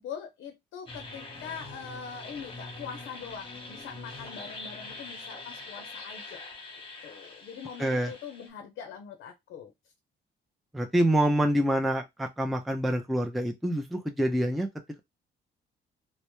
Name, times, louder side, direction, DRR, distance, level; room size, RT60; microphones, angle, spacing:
voice 1, 0.0-6.4 7.0-9.7, left 7 dB, 75° left, 0.5 m, -42 dB
sound 1, 0.9-8.5, left 3 dB, 25° left, 0.9 m, -43 dB
voice 2, 7.8-8.1 10.7-14.7, right 1 dB, ahead, 0.3 m, -26 dB
2.1 x 2.0 x 2.9 m
cardioid pair, 90°, 20 cm